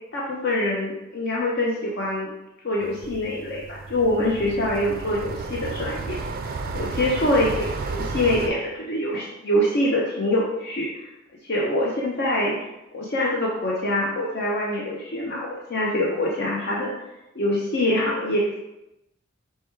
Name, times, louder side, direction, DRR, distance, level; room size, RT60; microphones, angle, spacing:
voice 1, 0.1-2.3 2.6-6.2 6.7-10.9 11.4-12.6 12.9-16.9 17.3-18.6, left 1 dB, 55° left, -3 dB, 0.6 m, -24 dB
sound 1, 2.8-8.5, right 3 dB, 45° right, 0.4 m, -32 dB
4.7 x 2.2 x 4.4 m, 0.93 s
head